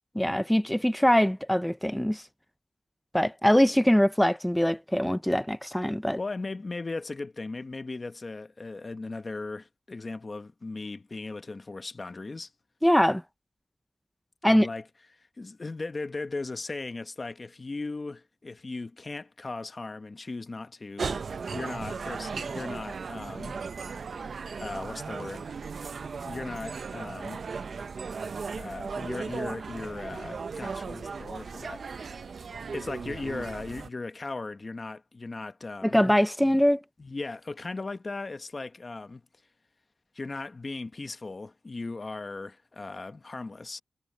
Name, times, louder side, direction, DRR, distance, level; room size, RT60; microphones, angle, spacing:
voice 1, 0.2-2.2 3.1-6.2 12.8-13.2 14.4-14.7 35.8-36.8, equal, 5° left, 0.4 m, -23 dB
voice 2, 6.2-12.5 14.5-14.9 15.1-21.2 21.5-23.6 24.6-25.5 26.2-27.4 28.5-31.9 32.7-36.0 36.5-36.6 37.0-39.2 40.1-43.8, left 3 dB, 40° left, 1.1 m, -37 dB
sound 1, 21.0-33.9, right 5 dB, 70° right, 0.5 m, -37 dB
wide cardioid pair, 105°, 0 cm